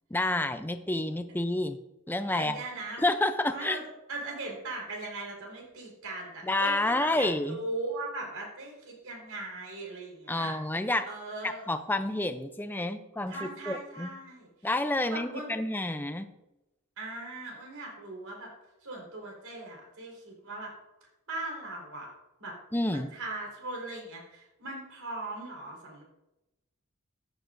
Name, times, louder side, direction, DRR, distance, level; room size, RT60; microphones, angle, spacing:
voice 1, 0.1-1.8 2.1-2.6 3.0-3.8 6.4-7.6 10.3-11.1 11.4-14.1 14.6-16.3 22.7-23.1, left 2 dB, 10° left, 9 dB, 0.5 m, -29 dB
voice 2, 2.4-3.1 3.5-3.8 4.1-7.3 7.6-10.5 11.0-11.7 13.3-14.5 15.1-15.5 17.0-18.5 18.8-20.7 21.3-22.1 22.4-22.5 23.1-26.0, right 2 dB, 85° right, -1 dB, 4.5 m, -39 dB
14.0 x 10.5 x 2.7 m, 0.96 s
head